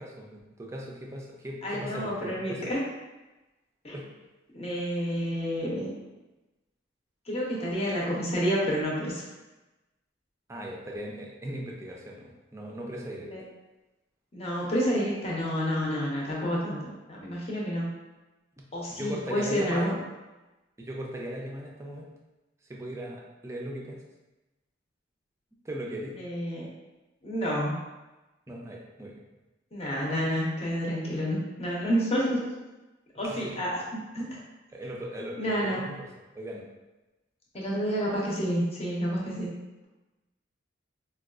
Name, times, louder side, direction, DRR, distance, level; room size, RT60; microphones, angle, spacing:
voice 1, 0.0-2.6 3.9-4.1 10.5-13.3 18.6-18.7 18.9-20.0 20.8-22.1 22.7-24.0 25.6-26.2 28.5-29.2 30.2-30.3 33.2-33.7 34.7-36.0 36.3-36.6, equal, 15° right, -2 dB, 0.4 m, -38 dB
voice 2, 1.6-2.8 3.8-4.0 4.5-5.9 7.3-9.3 13.3-13.4 14.3-17.9 18.7-19.9 26.2-26.7 27.2-27.8 29.7-32.5 33.1-33.8 34.1-34.4 35.4-35.8 37.5-39.5, equal, 30° left, -4 dB, 0.7 m, -29 dB
4.4 x 2.2 x 2.4 m, 1.1 s
head